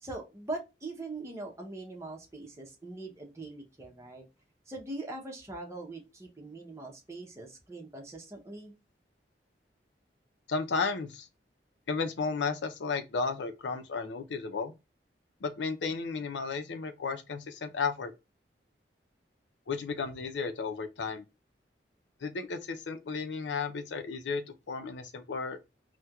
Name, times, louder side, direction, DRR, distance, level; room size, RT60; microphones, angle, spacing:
voice 1, 0.0-4.2 4.7-8.7, right 2 dB, 15° right, 0.7 m, -42 dB
voice 2, 10.5-11.3 11.9-14.7 15.4-18.1 19.7-21.2 22.2-25.6, left 4 dB, 85° left, 0.5 m, -33 dB
4.3 x 2.2 x 2.3 m
head